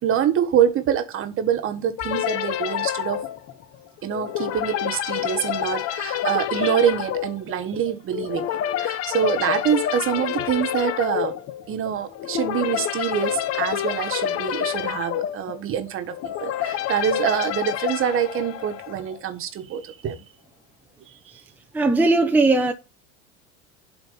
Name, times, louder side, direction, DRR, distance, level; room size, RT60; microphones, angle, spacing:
voice 1, 0.0-3.2 4.0-11.3 11.7-20.2, right 9 dB, 35° right, 1.5 m, -25 dB
sound 1, 2.0-19.2, left 11 dB, 40° left, 1.0 m, -28 dB
voice 2, 21.7-22.7, right 2 dB, 5° right, 0.7 m, -18 dB
7.9 x 4.4 x 6.9 m
supercardioid pair, 130°, 35 cm